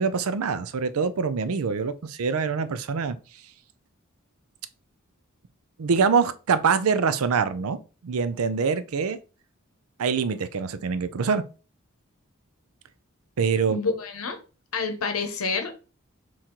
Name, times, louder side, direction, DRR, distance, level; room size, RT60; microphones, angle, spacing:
voice 1, 0.0-3.2 5.8-9.2 10.0-11.4 13.4-13.8, right 5 dB, 80° right, 0.5 m, -24 dB
voice 2, 13.7-14.4 14.7-15.7, left 4 dB, 80° left, 0.8 m, -28 dB
4.3 x 3.1 x 3.8 m
head